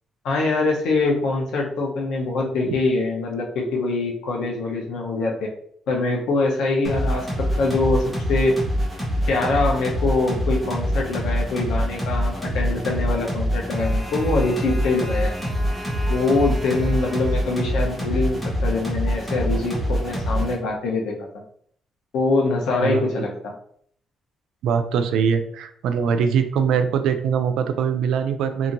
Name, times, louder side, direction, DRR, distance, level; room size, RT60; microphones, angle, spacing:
voice 1, 0.2-5.5 5.9-8.6 9.3-15.3 16.1-21.4 22.1-23.5, left 3 dB, 85° left, -1 dB, 0.8 m, -24 dB
sound 1, 6.8-20.6, equal, ahead, 0.8 m, -25 dB
voice 2, 24.6-28.7, right 7 dB, 85° right, 9 dB, 0.3 m, -22 dB
2.8 x 2.5 x 2.5 m, 0.64 s
cardioid pair, 150°, 0 cm